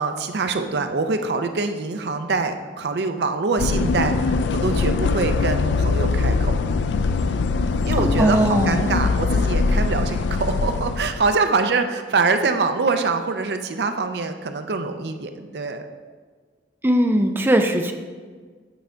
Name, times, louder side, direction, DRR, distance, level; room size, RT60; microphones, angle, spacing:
voice 1, 0.0-6.6 7.8-15.8, right 4 dB, 65° right, 7 dB, 0.5 m, -24 dB
sound 1, 3.6-11.4, left 4 dB, 80° left, 0.4 m, -22 dB
voice 2, 8.0-9.1 16.8-17.9, right 1 dB, 10° right, 5 dB, 0.4 m, -20 dB
8.9 x 5.0 x 3.4 m, 1.5 s
head